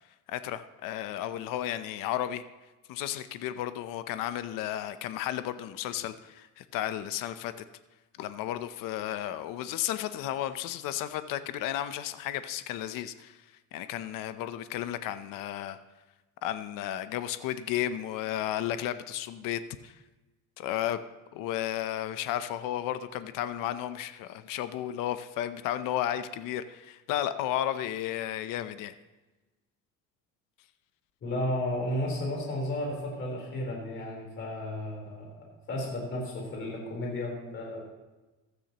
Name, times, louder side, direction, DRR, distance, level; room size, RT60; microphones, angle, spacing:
voice 1, 0.3-2.4 2.9-7.5 8.2-13.4 13.7-15.8 16.4-20.0 20.6-21.0 21.3-28.9, left 12 dB, 80° left, 11 dB, 0.7 m, -33 dB
voice 2, 31.2-37.8, left 1 dB, 40° left, -2 dB, 3.9 m, -33 dB
15.5 x 13.0 x 3.0 m, 1.2 s
cardioid pair, 160°, 32 cm